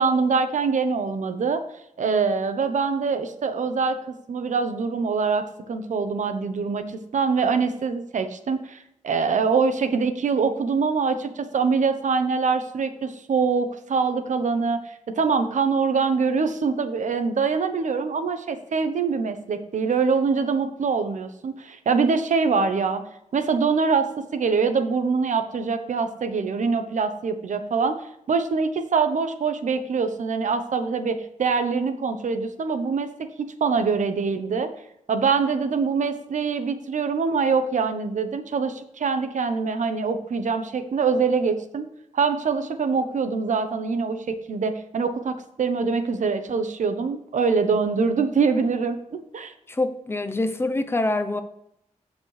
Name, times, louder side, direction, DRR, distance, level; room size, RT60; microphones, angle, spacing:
voice 1, 0.0-1.6 2.0-4.0 4.3-23.0 23.3-28.0 28.3-34.7 35.1-41.9 42.1-49.5, right 5 dB, 75° right, 9 dB, 1.0 m, -24 dB
voice 2, 49.7-51.4, left 2 dB, 20° left, 8 dB, 0.7 m, -25 dB
14.5 x 5.2 x 3.3 m, 0.77 s
wide cardioid pair, 180°, 13 cm